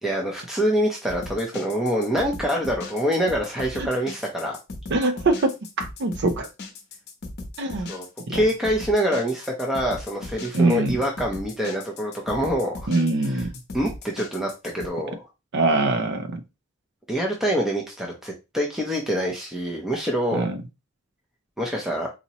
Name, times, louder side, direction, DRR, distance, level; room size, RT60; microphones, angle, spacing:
voice 1, 0.0-4.6 7.9-8.1 8.3-12.9 13.3-13.4 13.7-15.2 17.1-20.5 21.6-22.1, equal, ahead, -1 dB, 0.7 m, -25 dB
sound 1, 1.1-14.9, left 2 dB, 55° left, 0.8 m, -38 dB
voice 2, 4.9-6.5 7.6-7.9 8.3-8.4 10.5-11.0 12.9-13.5 15.5-16.4 20.3-20.6, right 2 dB, 60° right, 8 dB, 0.6 m, -23 dB
4.1 x 2.9 x 2.9 m, 0.25 s
head